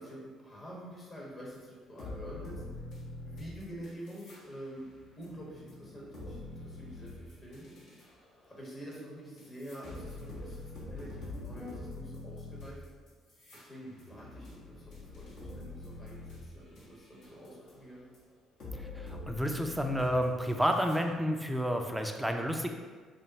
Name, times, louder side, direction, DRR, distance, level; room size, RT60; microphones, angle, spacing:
voice 1, 0.0-2.5 3.2-4.9 5.2-7.7 8.5-10.6 10.9-12.8 13.5-18.0, equal, 40° left, -5 dB, 1.2 m, -47 dB
sound 1, 1.5-1.6 2.0-4.4 4.7-8.0 8.9-9.0 9.4-16.8 17.2-17.7 18.1-18.2 18.6-21.0, left 2 dB, 65° left, 1.1 m, -45 dB
voice 2, 18.8-22.7, equal, 5° right, 3 dB, 0.5 m, -30 dB
5.1 x 2.2 x 2.8 m, 1.5 s
hypercardioid pair, 50°, 0 cm